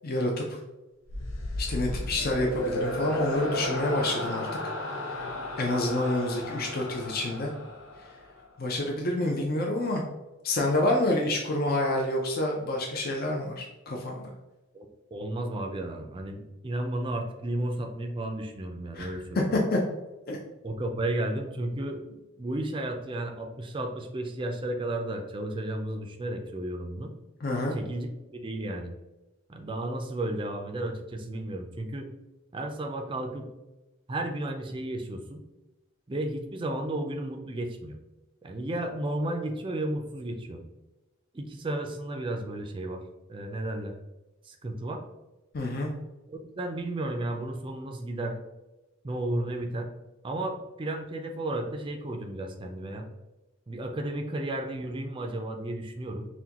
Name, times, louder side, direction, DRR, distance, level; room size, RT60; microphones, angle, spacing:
voice 1, 0.0-0.6 1.6-4.7 5.0-5.2 5.6-7.5 8.6-10.0 10.4-14.3 18.9-19.8 20.3-20.4 27.4-27.8 45.5-45.9, left 1 dB, 50° left, 0 dB, 0.5 m, -28 dB
sound 1, 1.1-8.4, left 1 dB, 80° left, 0.8 m, -34 dB
voice 2, 14.7-19.5 20.6-27.1 27.7-28.9 29.5-32.1 32.5-33.5 34.1-35.4 36.1-38.0 38.4-40.6 41.3-43.0 43.3-43.9 44.5-45.0 46.3-48.4 49.0-49.9 50.2-53.1 53.7-56.3, right 1 dB, 25° right, 3 dB, 0.4 m, -33 dB
5.9 x 2.2 x 2.9 m, 1.0 s
head